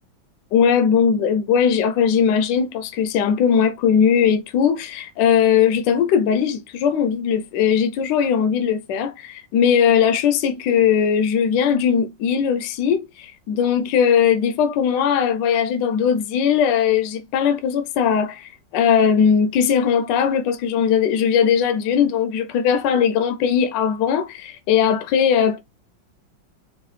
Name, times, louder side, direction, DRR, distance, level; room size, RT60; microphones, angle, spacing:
voice 1, 0.5-25.6, left 7 dB, 75° left, 1.2 m, -19 dB
4.6 x 2.2 x 3.1 m
omnidirectional pair, 2.1 m